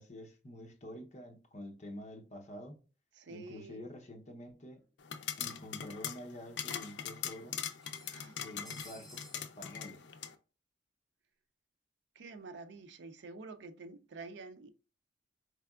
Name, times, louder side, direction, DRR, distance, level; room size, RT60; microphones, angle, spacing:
voice 1, 0.0-2.8 3.3-4.8 5.4-7.6 8.4-10.0, left 1 dB, 40° left, 0.7 m, -48 dB
voice 2, 3.1-3.9 8.1-8.4 12.2-14.7, right 3 dB, 75° right, 0.5 m, -48 dB
sound 1, 4.4-4.5 4.8-4.9 5.9-6.0 6.4-6.5 7.8-9.5, equal, ahead, 1.3 m, -55 dB
sound 2, 5.0-10.3, left 8 dB, 75° left, 0.4 m, -41 dB
4.6 x 3.3 x 2.3 m
head